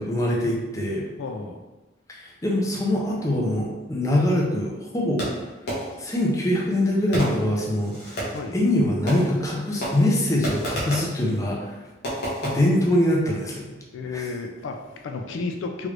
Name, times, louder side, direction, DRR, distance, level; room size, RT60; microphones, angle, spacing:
voice 1, 0.0-1.0 2.1-5.3 6.0-8.2 8.5-11.7 12.4-13.7 14.1-14.3, left 1 dB, 15° left, -3 dB, 0.5 m, -23 dB
voice 2, 1.2-1.6 8.3-8.6 13.9-15.9, left 4 dB, 75° left, 4 dB, 0.3 m, -32 dB
Fireworks, 5.2-6.1 7.1-8.5 9.1-9.5 9.8-11.2 12.0-12.5, equal, 55° left, 1.0 m, -30 dB
3.2 x 2.5 x 3.1 m, 1.1 s
head